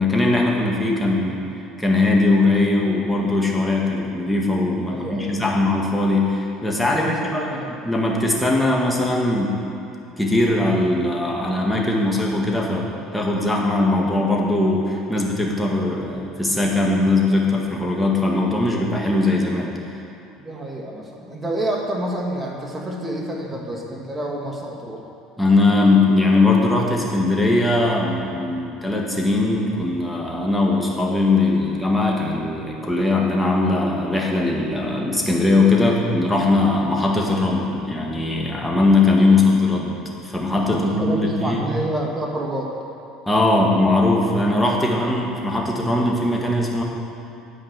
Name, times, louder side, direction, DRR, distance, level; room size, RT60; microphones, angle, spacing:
voice 1, 0.0-1.4 1.8-9.6 10.2-19.7 25.4-41.6 43.3-46.8, left 2 dB, 5° left, -2 dB, 1.7 m, -20 dB
voice 2, 4.9-5.6 7.0-7.7 20.4-25.0 35.9-36.0 39.3-39.4 40.6-42.7, right 1 dB, 20° right, -1 dB, 1.7 m, -28 dB
10.0 x 5.3 x 7.9 m, 2.8 s
supercardioid pair, 105°, 0 cm